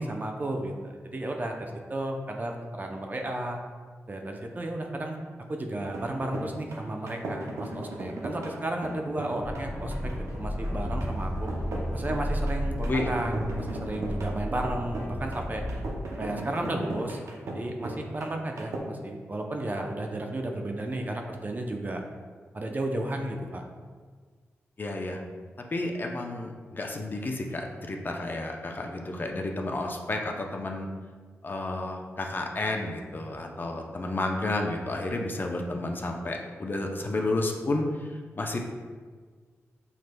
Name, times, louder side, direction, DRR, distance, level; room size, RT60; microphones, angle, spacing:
voice 1, 0.0-3.6 4.1-5.2 5.5-11.5 11.9-15.6 16.2-17.2 17.5-22.0 22.5-23.6, right 1 dB, 35° right, 2 dB, 0.5 m, -33 dB
sound 1, 5.8-18.8, right 1 dB, 85° right, 0.6 m, -38 dB
Accelerating revving vroom, 9.4-16.0, equal, 20° right, 1.1 m, -32 dB
voice 2, 24.8-25.2 25.7-30.9 31.4-37.8 38.4-38.6, left 2 dB, 40° left, 2 dB, 0.5 m, -31 dB
5.8 x 3.2 x 2.2 m, 1.5 s
cardioid pair, 65°, 5 cm